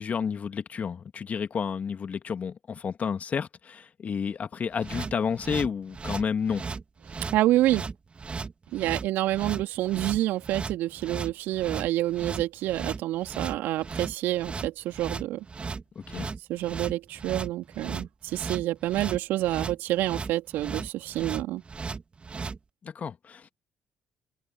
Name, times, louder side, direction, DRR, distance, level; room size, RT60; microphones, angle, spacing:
voice 1, 0.0-6.6 16.0-16.3 22.8-23.5, left 6 dB, 45° left, 2.5 m, -31 dB
sound 1, 4.8-22.6, right 4 dB, 35° right, 3.0 m, -36 dB
voice 2, 7.3-7.8 8.7-15.4 16.5-21.6, right 15 dB, 70° right, 3.1 m, -28 dB
hypercardioid pair, 45°, 4 cm